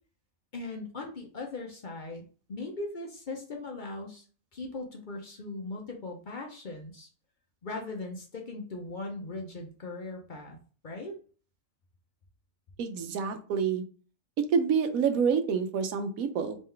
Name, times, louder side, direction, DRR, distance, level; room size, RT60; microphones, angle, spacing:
voice 1, 0.5-2.2 2.5-4.2 4.5-7.1 7.6-10.6 10.8-11.2, left 2 dB, 45° left, 1 dB, 0.7 m, -39 dB
voice 2, 12.8-13.8 14.5-16.6, right 6 dB, 80° right, 8 dB, 1.1 m, -27 dB
3.6 x 3.1 x 3.2 m, 0.40 s
omnidirectional pair, 1.5 m